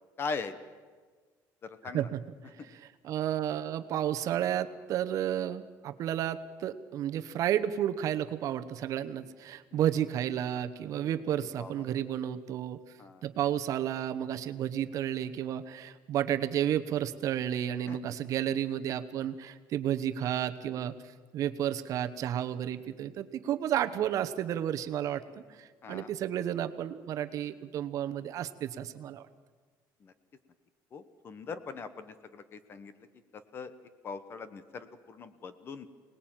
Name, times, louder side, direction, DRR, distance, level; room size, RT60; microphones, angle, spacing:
voice 1, 0.2-0.5 1.6-2.1 9.7-9.8 11.4-11.7 13.0-13.2 17.9-18.0 25.8-26.1 30.0-30.1 30.9-32.9 33.3-33.7 34.0-35.9, left 4 dB, 30° left, 13 dB, 1.1 m, -41 dB
voice 2, 2.6-12.8 13.2-21.0 21.3-29.3, right 10 dB, 50° right, 9 dB, 1.0 m, -32 dB
25.5 x 19.5 x 9.0 m, 1.5 s
cardioid pair, 175°, 8 cm